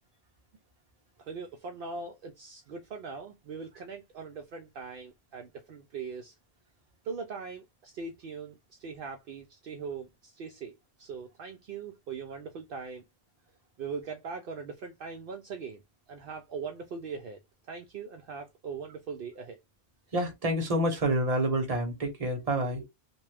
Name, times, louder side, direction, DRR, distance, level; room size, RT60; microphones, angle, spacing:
voice 1, 1.2-6.3 7.0-13.0 13.8-15.8 16.1-17.4 17.7-19.6, right 5 dB, 65° right, 0.7 m, -40 dB
voice 2, 20.1-22.9, right 1 dB, 40° right, 0.9 m, -28 dB
3.0 x 2.2 x 3.2 m
omnidirectional pair, 1.1 m